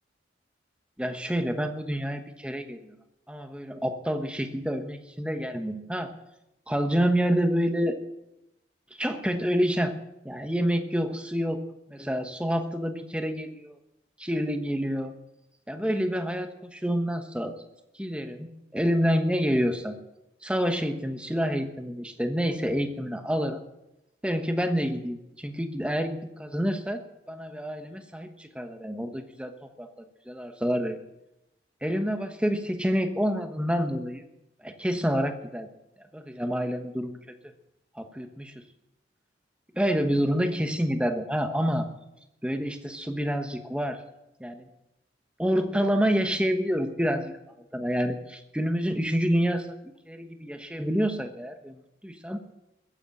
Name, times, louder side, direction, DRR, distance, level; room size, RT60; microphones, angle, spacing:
voice 1, 1.0-3.0 3.3-6.1 6.7-8.0 8.9-10.0 10.2-11.6 11.9-13.7 14.2-15.1 15.7-17.5 17.9-20.0 20.4-23.6 24.2-31.0 31.8-34.3 34.6-35.7 36.1-37.2 37.9-38.6 39.7-41.9 42.4-44.0 44.4-44.7 45.4-47.3 47.7-52.4, equal, 5° right, 7 dB, 1.1 m, -28 dB
14.5 x 9.7 x 8.8 m, 0.90 s
head